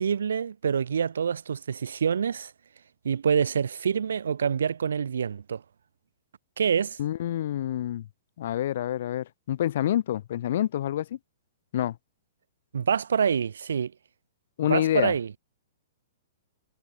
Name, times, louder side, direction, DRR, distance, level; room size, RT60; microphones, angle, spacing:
voice 1, 0.0-2.5 3.0-5.6 6.6-7.0 12.7-13.9 14.6-15.3, right 7 dB, 85° right, 1.7 m, -26 dB
voice 2, 7.0-8.1 8.4-11.2 11.7-12.0 14.6-15.1, left 12 dB, 65° left, 7.2 m, -27 dB
hypercardioid pair, 135°, 0 cm